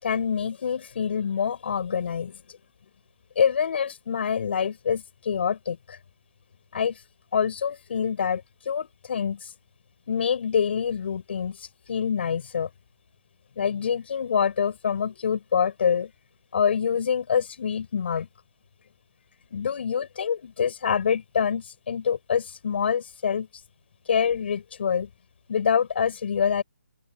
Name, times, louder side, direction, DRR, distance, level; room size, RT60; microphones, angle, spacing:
voice 1, 0.0-2.6 3.4-6.0 6.7-7.0 7.3-9.5 10.1-12.7 13.6-16.1 16.5-18.3 19.5-23.5 24.1-25.1 25.5-26.6, left 7 dB, 50° left, 6.1 m, -26 dB
open air
hypercardioid pair, 155°, 8 cm